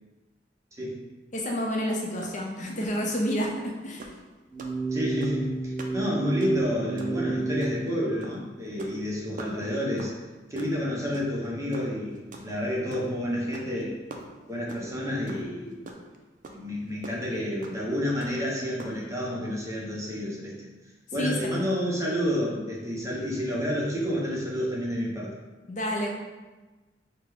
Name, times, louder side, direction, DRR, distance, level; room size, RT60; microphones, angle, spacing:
voice 1, 1.3-4.1 21.2-21.7 25.7-26.1, equal, 45° left, 0 dB, 0.5 m, -29 dB
sound 1, 2.2-2.4 2.6-2.9 3.4-3.6 4.0-4.2 4.6-4.8 5.2-5.5 5.8-6.0 6.2-6.7 7.0-7.2 7.6-7.9 8.2-8.4 8.7-9.0 9.4-9.5 10.0-10.2 10.6-10.7 11.1-11.5 11.7-13.1 13.5-13.8 14.1-14.9 15.3-15.4 15.7-16.2 16.4-16.5 17.0-17.2 17.6-17.7 18.2-18.5 18.8-18.9, right 3 dB, 45° right, 0.4 m, -42 dB
sound 2, 4.5-7.7, right 3 dB, 5° left, 1.0 m, -30 dB
voice 2, 4.9-10.1 10.5-14.0 14.5-15.8 16.5-20.7 21.1-25.3, equal, 15° right, -4 dB, 0.7 m, -30 dB
4.9 x 2.2 x 3.4 m, 1.2 s
head